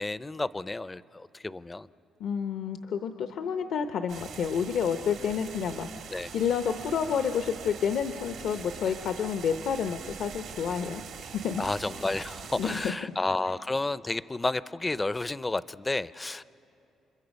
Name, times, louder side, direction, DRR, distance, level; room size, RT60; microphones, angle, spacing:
voice 1, 0.0-1.9 6.1-6.3 11.6-16.4, left 2 dB, 20° left, 17 dB, 0.4 m, -31 dB
voice 2, 2.2-11.6 12.6-12.9, left 7 dB, 75° left, 7 dB, 0.7 m, -30 dB
sound 1, 4.1-12.9, right 7 dB, 80° right, 1.6 m, -43 dB
29.5 x 25.5 x 5.3 m, 2.8 s
cardioid pair, 90°, 0 cm